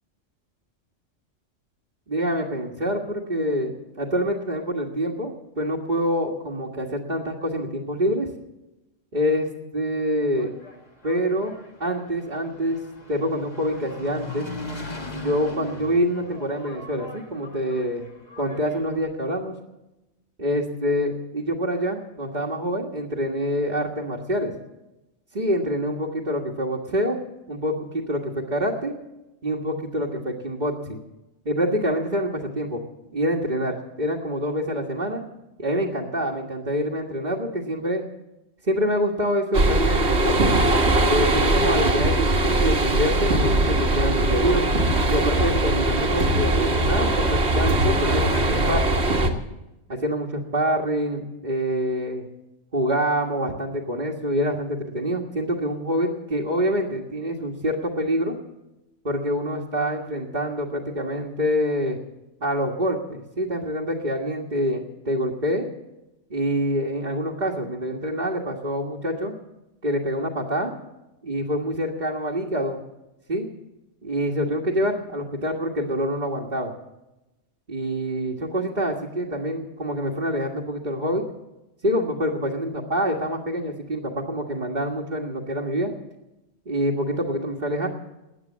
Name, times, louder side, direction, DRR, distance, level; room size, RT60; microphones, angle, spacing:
voice 1, 2.1-8.3 9.1-10.5 11.0-11.5 11.8-12.8 13.1-14.5 15.1-18.0 18.4-19.5 20.4-24.5 25.3-27.2 27.5-28.9 29.4-31.0 31.5-32.8 33.1-35.2 35.6-38.0 38.6-40.4 41.1-44.7 45.1-49.3 49.9-52.2 52.7-58.4 59.0-62.0 62.4-65.7 66.3-69.3 69.8-70.7 71.2-72.8 73.3-73.5 74.0-76.7 77.7-81.2 81.8-85.9 86.7-87.9, equal, 35° right, -2 dB, 1.8 m, -26 dB
Engine, 10.1-19.0, left 2 dB, 35° left, 2.0 m, -40 dB
sound 1, 39.5-49.3, right 1 dB, 55° right, 1.9 m, -21 dB
20.5 x 9.4 x 7.4 m, 0.99 s
omnidirectional pair, 1.3 m